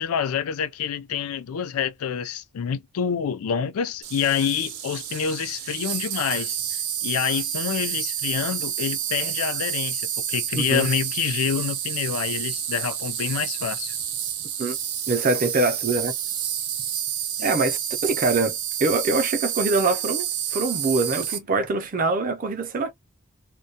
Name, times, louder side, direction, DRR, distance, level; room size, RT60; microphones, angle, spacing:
voice 1, 0.0-6.6 7.0-13.9 17.4-17.5, left 8 dB, 80° left, 0.4 m, -27 dB
Insect, 4.0-21.4, right 10 dB, 85° right, 0.5 m, -29 dB
voice 2, 10.6-10.9 14.6-14.8 15.1-16.1 17.4-22.9, right 3 dB, 40° right, 0.4 m, -24 dB
2.2 x 2.1 x 2.7 m
head